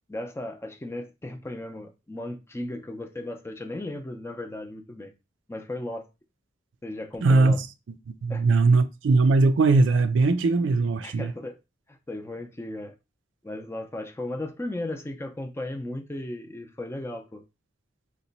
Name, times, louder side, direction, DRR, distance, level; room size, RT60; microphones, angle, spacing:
voice 1, 0.1-5.1 5.5-6.0 6.8-7.6 8.3-8.4 11.0-11.6 11.9-12.9 13.4-17.4, left 1 dB, 15° left, 0.5 m, -36 dB
voice 2, 7.2-7.7 8.2-11.3, right 3 dB, 80° right, 0.4 m, -20 dB
2.9 x 2.2 x 3.9 m
head